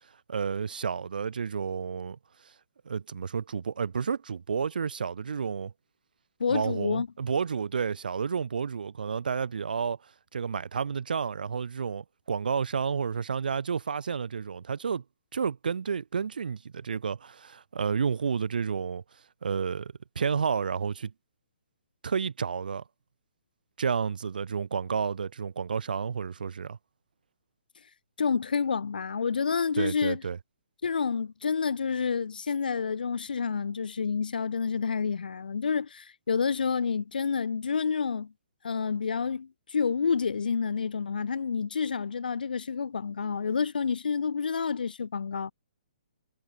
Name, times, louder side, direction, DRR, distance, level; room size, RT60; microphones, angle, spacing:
voice 1, 0.3-2.2 2.9-5.7 6.5-10.0 10.3-15.0 15.3-19.0 19.4-21.1 22.0-22.8 23.8-26.8 29.8-30.4, right 6 dB, 80° right, 1.6 m, -31 dB
voice 2, 6.4-7.1 28.2-30.2 30.8-38.3 38.6-45.5, left 6 dB, 85° left, 2.1 m, -29 dB
hypercardioid pair, 165°, 5 cm